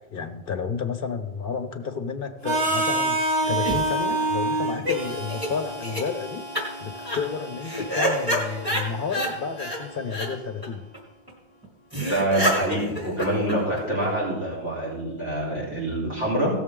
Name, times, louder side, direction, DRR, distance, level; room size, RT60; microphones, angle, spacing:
voice 1, 0.1-6.5 6.8-10.9, left 5 dB, 55° left, 7 dB, 1.1 m, -31 dB
Harmonica, 2.4-10.3, right 2 dB, 60° right, 2.2 m, -29 dB
sound 1, 3.4-5.0 5.3-5.5 5.8-6.0 6.6-6.7 7.0-7.2 7.6-9.3 9.6-9.8 10.1-10.3 10.6-10.7 10.9-11.0 11.3-11.4 11.6-11.7 11.9-14.0, equal, 20° right, 2.7 m, -28 dB
voice 2, 12.0-16.5, right 1 dB, 85° right, -5 dB, 4.0 m, -26 dB
17.0 x 7.0 x 3.8 m, 1.0 s
omnidirectional pair, 1.2 m